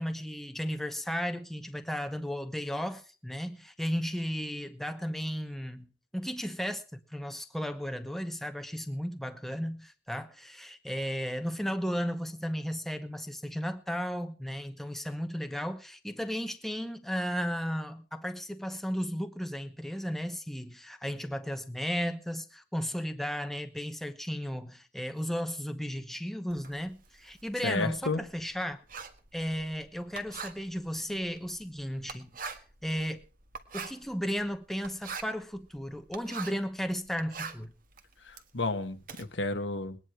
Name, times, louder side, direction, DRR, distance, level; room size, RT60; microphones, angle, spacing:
voice 1, 0.0-28.8 29.3-33.2 33.7-37.7, equal, ahead, 1.0 m, -34 dB
Writing, 26.5-36.7 37.1-39.2, right 5 dB, 50° right, 1.6 m, -44 dB
voice 2, 27.6-28.3 38.2-40.0, left 2 dB, 85° left, 1.5 m, -32 dB
20.5 x 10.0 x 4.8 m
head